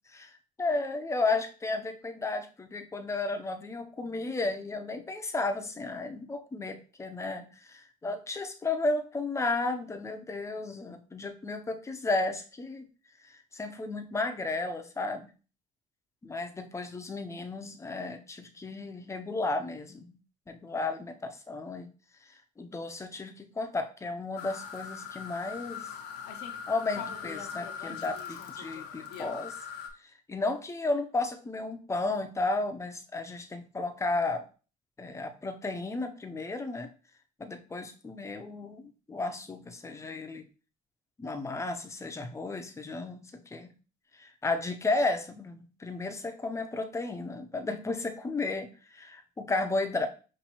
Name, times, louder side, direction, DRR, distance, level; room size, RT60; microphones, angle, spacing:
voice 1, 0.6-12.9 13.3-15.3 16.2-20.2 20.5-21.9 22.6-25.9 26.7-29.5 30.3-34.4 35.0-36.9 37.4-40.4 41.2-43.7 44.2-50.1, left 3 dB, 15° left, 7 dB, 0.6 m, -33 dB
sound 1, 24.4-29.9, left 7 dB, 90° left, 0.8 m, -40 dB
5.5 x 2.6 x 2.9 m, 0.36 s
cardioid pair, 110°, 17 cm